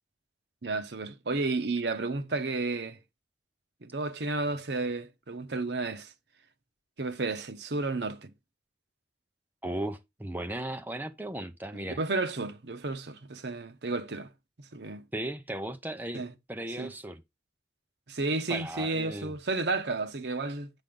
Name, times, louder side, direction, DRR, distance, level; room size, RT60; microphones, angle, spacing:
voice 1, 0.6-3.0 3.8-6.1 7.0-8.3 11.7-14.3 14.6-15.1 16.1-16.3 16.8-16.9 18.1-20.7, right 3 dB, 75° right, 0.9 m, -32 dB
voice 2, 9.6-12.0 15.1-16.2 16.5-17.2 18.5-19.3, right 1 dB, 10° right, 0.6 m, -36 dB
8.7 x 5.2 x 3.8 m
head